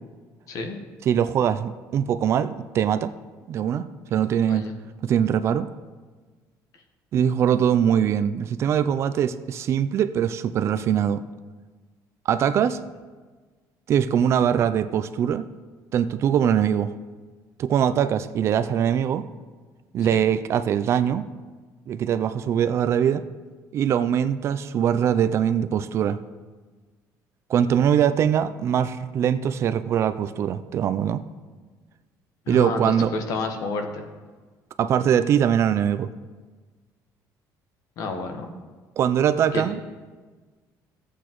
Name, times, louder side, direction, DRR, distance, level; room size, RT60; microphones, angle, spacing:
voice 1, 0.5-0.8 4.5-4.7 20.1-20.2 32.5-34.0 38.0-38.5 39.5-39.6, left 3 dB, 50° left, 5 dB, 1.1 m, -30 dB
voice 2, 1.1-3.1 3.5-3.8 4.1-4.6 5.0-5.7 7.1-11.2 12.3-12.8 13.9-15.5 15.9-16.9 17.6-19.2 19.9-21.2 21.9-23.2 23.7-26.2 27.5-31.2 32.5-33.1 34.8-36.1 39.0-39.8, right 9 dB, 40° right, 11 dB, 0.3 m, -22 dB
15.0 x 8.2 x 3.0 m, 1.4 s
cardioid pair, 165°, 7 cm